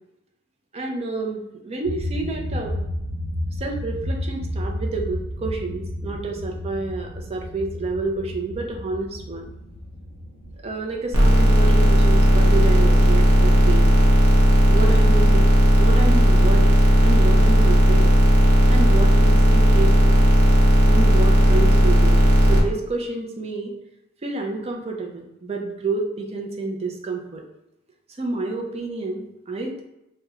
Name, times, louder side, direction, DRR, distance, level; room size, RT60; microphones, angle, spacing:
voice 1, 0.7-2.7 3.5-9.5 10.6-13.9 14.7-15.4 15.8-16.7 17.0-18.2 18.7-20.3 20.8-23.7 24.2-27.4 28.2-29.8, right 3 dB, 30° right, 1 dB, 0.5 m, -29 dB
sound 1, 1.8-11.1, equal, 35° left, 1.4 m, -32 dB
sound 2, 11.1-22.6, equal, 70° right, 0.8 m, -15 dB
3.0 x 2.2 x 3.5 m, 0.89 s
head